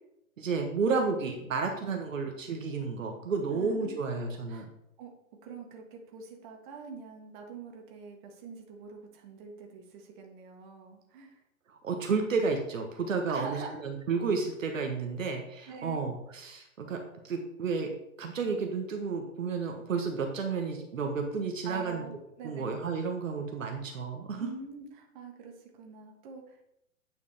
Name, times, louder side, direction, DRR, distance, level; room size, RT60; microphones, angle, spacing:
voice 1, 0.4-4.6 11.8-17.9 18.2-22.0 22.4-24.5, right 4 dB, 70° right, 4 dB, 1.1 m, -31 dB
voice 2, 3.5-4.0 4.5-4.7 5.0-5.1 5.4-11.4 13.3-13.8 15.7-16.1 21.6-22.7 24.4-26.6, right 5 dB, 35° right, 2 dB, 1.4 m, -45 dB
8.7 x 5.0 x 3.3 m, 0.82 s
figure-of-eight pair, 120°, 41 cm